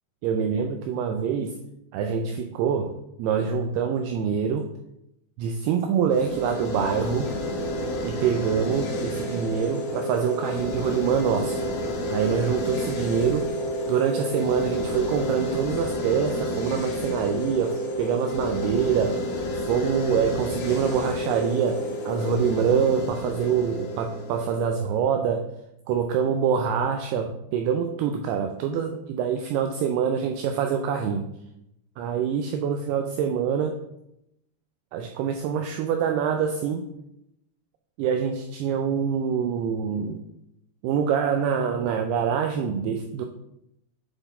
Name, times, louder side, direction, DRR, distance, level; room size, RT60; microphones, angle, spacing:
voice 1, 0.2-1.5 1.9-4.7 5.4-7.3 8.0-11.6 12.1-13.5 13.9-19.2 19.7-25.4 25.9-31.3 32.0-33.8 34.9-36.8 38.0-40.2 40.8-43.3, right 7 dB, 90° right, 4 dB, 2.3 m, -25 dB
sound 1, 6.1-25.2, equal, 65° left, 2.6 m, -30 dB
9.9 x 4.1 x 4.1 m, 0.84 s
omnidirectional pair, 5.2 m